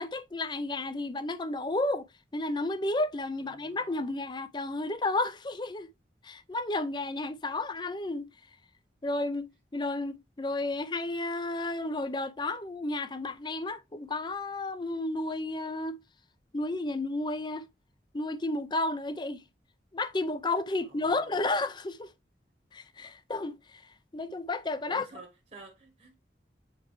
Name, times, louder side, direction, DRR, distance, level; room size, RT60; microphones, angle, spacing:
voice 1, 0.0-2.0 2.3-5.9 6.2-8.3 9.0-16.0 16.5-17.7 18.1-19.4 19.9-22.1 22.7-23.8 24.1-25.1, left 2 dB, 25° left, 0.5 m, -32 dB
voice 2, 20.8-21.4 24.9-26.1, right 3 dB, 35° right, 1.1 m, -51 dB
7.3 x 4.5 x 3.1 m
head